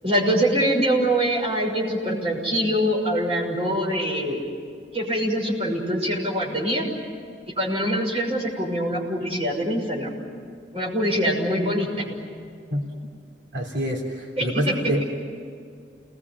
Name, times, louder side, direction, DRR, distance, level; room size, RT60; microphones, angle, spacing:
voice 1, 0.0-4.5 4.9-6.9 7.6-10.1 10.7-11.9 14.4-14.7, equal, 30° right, -1 dB, 6.3 m, -24 dB
voice 2, 13.5-15.0, equal, 75° right, 0 dB, 3.4 m, -26 dB
29.5 x 20.5 x 9.7 m, 2.3 s
head